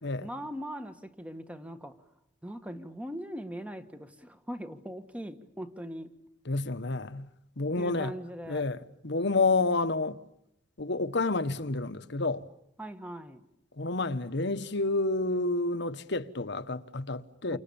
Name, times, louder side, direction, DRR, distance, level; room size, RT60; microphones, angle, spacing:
voice 1, 0.2-1.9 2.4-6.1 7.8-8.7 12.8-13.4 17.5-17.6, equal, 5° right, 1.6 m, -40 dB
voice 2, 6.4-7.3 7.6-8.1 8.5-10.2 10.8-12.4 13.8-17.6, left 3 dB, 65° left, 1.3 m, -29 dB
30.0 x 25.5 x 7.1 m
head